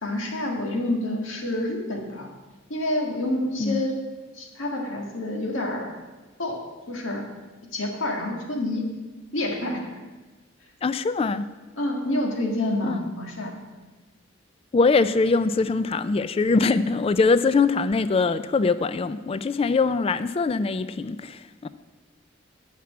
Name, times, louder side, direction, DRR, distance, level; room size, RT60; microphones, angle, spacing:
voice 1, 0.0-2.3 2.7-4.0 4.4-5.9 6.4-7.3 7.7-8.9 9.3-9.9 11.8-13.5, left 1 dB, 80° left, 1 dB, 1.8 m, -28 dB
voice 2, 10.8-11.5 12.8-13.1 14.7-21.7, left 4 dB, 30° left, 14 dB, 0.3 m, -22 dB
9.4 x 5.9 x 8.5 m, 1.2 s
head